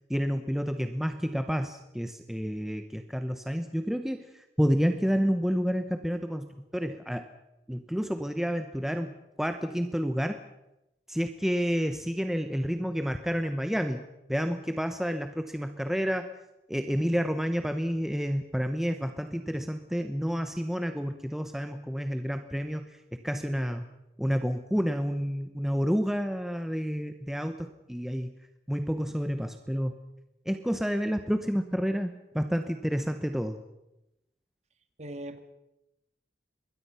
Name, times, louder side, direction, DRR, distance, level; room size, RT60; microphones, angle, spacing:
voice 1, 0.1-7.3 7.7-10.4 11.1-16.3 16.7-23.0 23.2-23.8 24.2-28.3 28.7-29.9 30.5-33.6, equal, ahead, 7 dB, 1.0 m, -29 dB
voice 2, 35.0-35.4, right 1 dB, 40° right, 8 dB, 2.1 m, -41 dB
25.5 x 21.5 x 5.8 m, 0.90 s
head